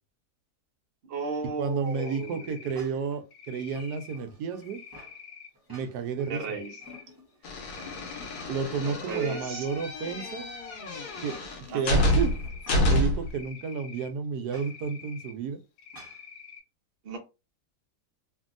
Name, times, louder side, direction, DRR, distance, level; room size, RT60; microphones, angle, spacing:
voice 1, 1.0-2.8 6.3-6.8 8.8-9.7 10.0-10.3 11.7-12.1 17.0-17.2, right 4 dB, 45° right, 0.8 m, -35 dB
voice 2, 1.6-4.8 5.7-6.6 8.5-10.5 11.2-11.4 11.7-12.3 12.8-15.6, right 6 dB, 90° right, 1.1 m, -31 dB
Cricket, 1.9-2.7 3.3-4.2 4.6-5.5 6.2-7.0 7.4-8.4 8.8-10.0 10.6-11.4 11.9-12.8 13.3-14.1 14.5-15.3 15.8-16.6, left 6 dB, 70° left, 1.0 m, -47 dB
sound 1, 2.7-3.2 3.7-5.2 5.5-6.3 6.6-7.4 7.8-9.5 9.9-10.0 11.0-13.0 14.5-14.7 15.9-16.2, equal, 20° right, 0.8 m, -50 dB
sound 2, 7.4-13.4, left 1 dB, 90° left, 1.3 m, -28 dB
2.8 x 2.6 x 2.5 m
omnidirectional pair, 1.6 m